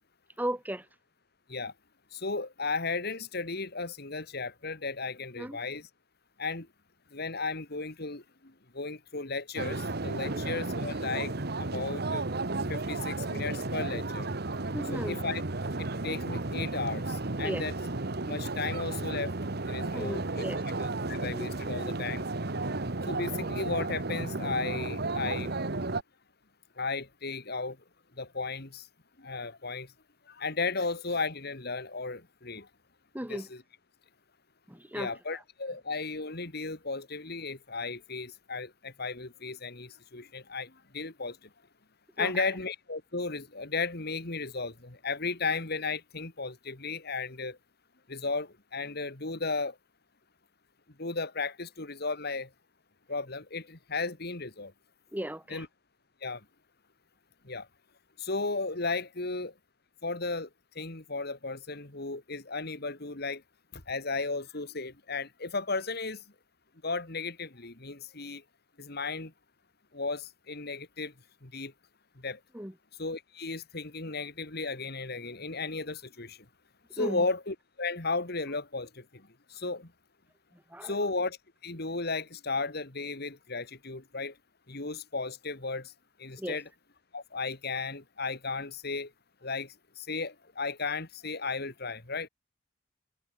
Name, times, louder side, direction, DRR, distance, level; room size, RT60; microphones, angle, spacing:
voice 1, 0.4-0.9 5.4-5.6 10.3-10.4 14.7-15.2 17.4-17.6 19.9-20.6 33.1-33.5 34.7-35.4 42.2-42.5 55.1-55.6 72.5-72.7 77.0-77.2 80.7-81.1 86.4-86.6, right 1 dB, 10° right, 4.3 m, -36 dB
voice 2, 2.1-5.9 6.4-6.7 7.1-8.2 8.7-11.3 11.6-12.3 12.7-14.3 14.9-15.4 15.8-17.7 18.3-19.3 19.7-20.4 20.8-22.2 23.1-25.5 26.8-27.8 28.2-28.9 29.2-29.9 30.3-32.7 33.3-33.6 34.9-41.4 42.2-47.6 48.1-49.7 51.0-52.5 53.1-54.7 55.5-55.7 56.2-56.4 57.5-57.7 58.2-59.5 60.0-60.5 60.8-63.4 63.7-66.2 66.8-68.4 68.8-69.3 69.9-71.1 71.4-71.7 72.2-72.4 73.0-76.4 76.9-79.0 79.5-79.9 80.8-81.4 81.6-84.3 84.7-85.9 86.2-86.6 87.1-89.1 89.4-92.3, left 3 dB, 55° left, 2.7 m, -35 dB
sound 1, 9.6-26.0, right 2 dB, 60° right, 1.5 m, -33 dB
head